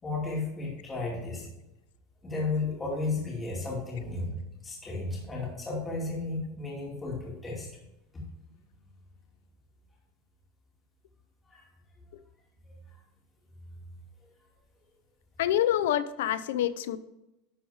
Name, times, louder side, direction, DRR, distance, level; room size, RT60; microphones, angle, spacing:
voice 1, 0.0-1.5 2.2-7.7 11.5-11.6, left 3 dB, 15° left, 2.5 m, -33 dB
voice 2, 15.4-17.0, left 11 dB, 85° left, 0.6 m, -26 dB
11.0 x 4.4 x 5.0 m
supercardioid pair, 160°, 0 cm